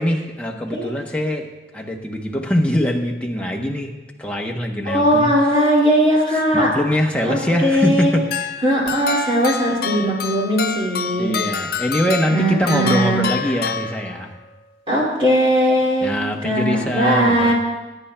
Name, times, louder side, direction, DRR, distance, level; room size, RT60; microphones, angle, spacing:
voice 1, 0.0-1.5 1.7-5.3 5.6-5.7 6.5-8.2 11.2-14.3 16.0-17.5, equal, 5° left, 0 dB, 0.8 m, -22 dB
voice 2, 4.9-6.7 7.2-8.1 8.6-11.3 12.3-13.2 14.9-16.2 16.4-17.5, equal, 30° right, -5 dB, 2.2 m, -18 dB
sound 1, 8.3-14.5, left 5 dB, 55° left, 0.4 m, -27 dB
20.0 x 10.0 x 2.2 m, 1.1 s
head